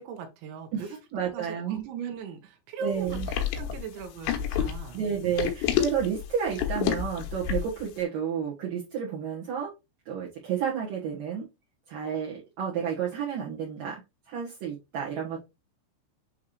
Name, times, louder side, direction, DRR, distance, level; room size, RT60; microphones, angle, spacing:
voice 1, 0.0-3.2 3.5-5.3, right 6 dB, 75° right, 6 dB, 3.4 m, -39 dB
voice 2, 1.1-1.7 2.8-3.3 4.9-9.7 10.1-11.5 11.9-14.0 14.3-15.4, right 8 dB, 60° right, -6 dB, 2.8 m, -31 dB
sound 1, 3.1-7.8, left 10 dB, 80° left, 3.3 m, -29 dB
8.7 x 3.6 x 3.2 m, 0.24 s
omnidirectional pair, 5.4 m